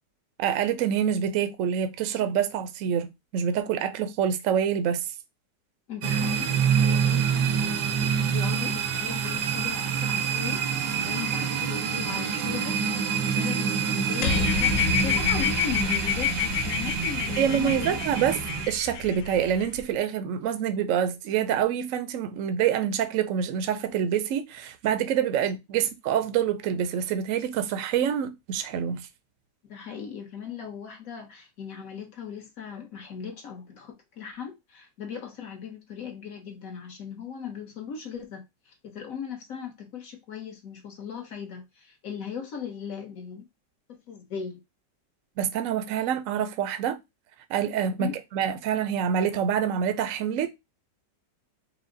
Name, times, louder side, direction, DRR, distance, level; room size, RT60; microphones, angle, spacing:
voice 1, 0.4-5.1 8.0-8.4 17.4-18.4 18.7-29.1 45.4-47.0 47.5-50.5, right 8 dB, 65° right, 0.8 m, -26 dB
voice 2, 5.9-10.6 11.0-18.0 29.7-43.4 44.1-44.6 47.9-48.1, left 7 dB, 55° left, 1.3 m, -38 dB
sound 1, 6.0-18.7, right 7 dB, 90° right, 1.4 m, -27 dB
sound 2, 14.2-19.8, left 8 dB, 70° left, 0.7 m, -28 dB
4.7 x 2.1 x 3.8 m
omnidirectional pair, 1.9 m